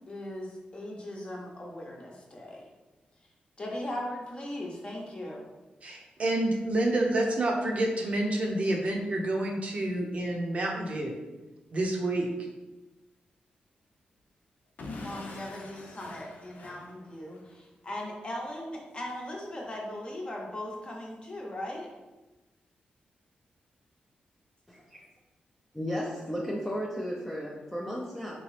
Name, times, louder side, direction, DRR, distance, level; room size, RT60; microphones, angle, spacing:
voice 1, 0.0-2.6 3.6-5.5 15.0-21.9, left 1 dB, 35° left, -1 dB, 0.8 m, -39 dB
voice 2, 5.8-11.2 11.7-12.5, right 1 dB, 45° right, 0 dB, 0.6 m, -28 dB
Explosion / Shatter, 14.8-17.6, left 2 dB, 60° left, 0.5 m, -44 dB
voice 3, 25.7-28.4, equal, 5° left, -4 dB, 0.5 m, -34 dB
3.7 x 2.9 x 3.2 m, 1.1 s
wide cardioid pair, 110°, 3 cm